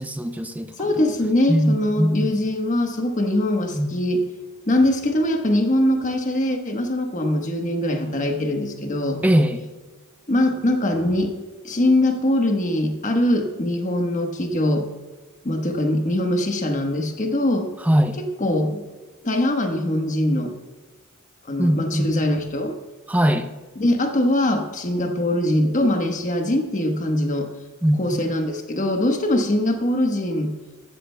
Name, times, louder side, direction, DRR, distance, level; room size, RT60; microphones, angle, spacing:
voice 1, 0.0-0.7 1.5-2.3 3.7-3.9 9.2-9.6 17.9-18.2 21.6-22.1 23.1-23.5 27.8-28.0, equal, 5° right, 8 dB, 0.5 m, -20 dB
voice 2, 0.8-4.3 4.7-9.2 10.3-11.3 11.6-14.9 15.4-17.7 18.2-18.8 19.2-20.6 21.5-22.8 23.8-27.5 27.9-30.5, left 1 dB, 35° left, 3 dB, 1.2 m, -22 dB
15.0 x 13.5 x 2.2 m, 1.2 s
head